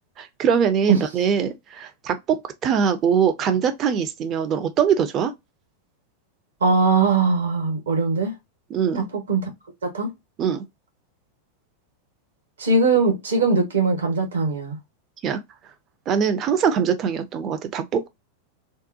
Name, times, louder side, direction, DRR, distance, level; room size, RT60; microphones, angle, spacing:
voice 1, 0.2-5.3 8.7-9.1 10.4-10.6 15.2-15.4 16.1-18.1, right 7 dB, 30° right, 0.5 m, -22 dB
voice 2, 6.6-8.3 8.9-9.5 9.8-10.1 12.6-14.8, right 4 dB, 65° right, 1.2 m, -20 dB
3.6 x 2.2 x 2.7 m
figure-of-eight pair, 90°, 0 cm